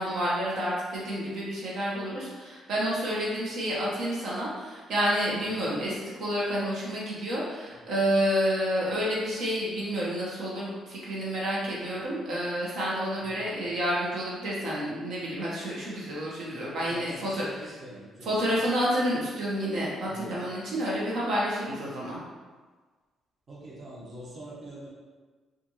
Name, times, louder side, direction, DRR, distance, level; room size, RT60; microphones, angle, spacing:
voice 1, 0.0-17.4 18.2-22.2, equal, 75° right, -6 dB, 1.0 m, -29 dB
voice 2, 16.9-18.6 20.0-20.4 23.5-24.9, right 1 dB, 40° right, -5 dB, 1.0 m, -45 dB
4.3 x 2.5 x 2.9 m, 1.4 s
cardioid pair, 90°, 0 cm